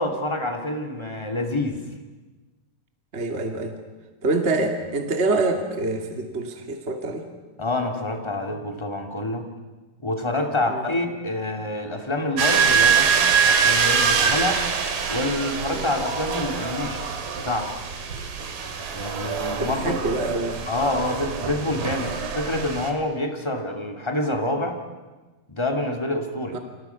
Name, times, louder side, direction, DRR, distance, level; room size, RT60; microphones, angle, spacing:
voice 1, 0.0-1.8 7.6-9.5 10.0-14.6 15.1-17.0 17.3-17.7 18.9-20.0 20.7-24.8 25.5-26.6, left 1 dB, 10° left, 3 dB, 2.0 m, -27 dB
voice 2, 3.1-3.7 4.2-7.2 10.7-10.8 15.7-15.9 19.6-20.6 26.5-26.6, right 2 dB, 25° right, 4 dB, 1.8 m, -26 dB
sound 1, 12.4-22.9, right 6 dB, 90° right, 4.1 m, -24 dB
30.0 x 26.5 x 5.9 m, 1.2 s
omnidirectional pair, 4.0 m